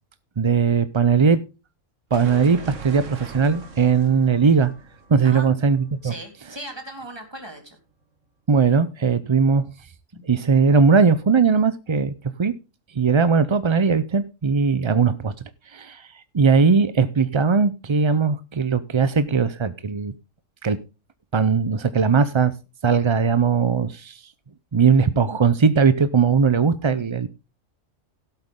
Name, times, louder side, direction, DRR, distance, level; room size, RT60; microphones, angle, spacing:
voice 1, 0.4-1.4 2.1-4.7 5.1-6.1 8.5-9.7 10.3-12.1 12.4-12.5 12.9-15.3 15.7-20.1 20.6-20.8 21.3-22.5 22.8-24.2 24.7-27.3, right 5 dB, 40° right, 0.4 m, -19 dB
sound 1, 2.1-6.9, right 4 dB, 70° right, 1.9 m, -41 dB
voice 2, 6.0-7.8, right 1 dB, 20° right, 3.3 m, -37 dB
17.0 x 7.9 x 3.7 m
omnidirectional pair, 1.3 m